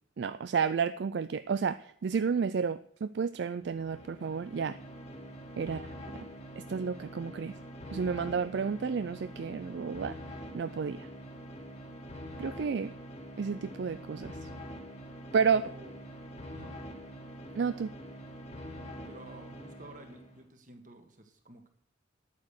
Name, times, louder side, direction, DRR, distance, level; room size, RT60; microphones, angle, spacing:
voice 1, 0.2-4.8 5.6-6.2 6.6-7.5 7.9-10.1 10.5-11.1 12.4-12.9 13.4-14.5 15.3-15.6 17.6-17.9, right 6 dB, 65° right, 13 dB, 0.4 m, -31 dB
sound 1, 3.6-20.4, equal, 35° left, 1.7 m, -45 dB
voice 2, 15.5-15.9 16.5-16.7 19.1-21.7, right 2 dB, 45° right, 6 dB, 1.8 m, -52 dB
9.5 x 9.2 x 6.6 m, 0.64 s
head